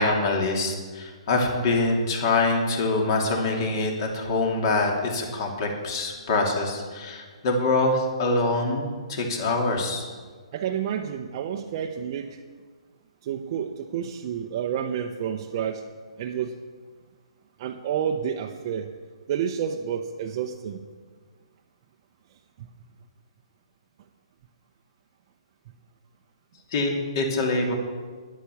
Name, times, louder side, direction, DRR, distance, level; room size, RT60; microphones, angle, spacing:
voice 1, 0.0-10.0 26.7-27.7, left 2 dB, 45° left, 1 dB, 2.8 m, -25 dB
voice 2, 10.5-12.4 13.2-15.8 16.2-16.6 17.6-18.9 19.3-20.8 22.6-22.7, right 8 dB, 40° right, 2 dB, 0.7 m, -29 dB
10.5 x 9.7 x 7.0 m, 1.5 s
hypercardioid pair, 150°, 3 cm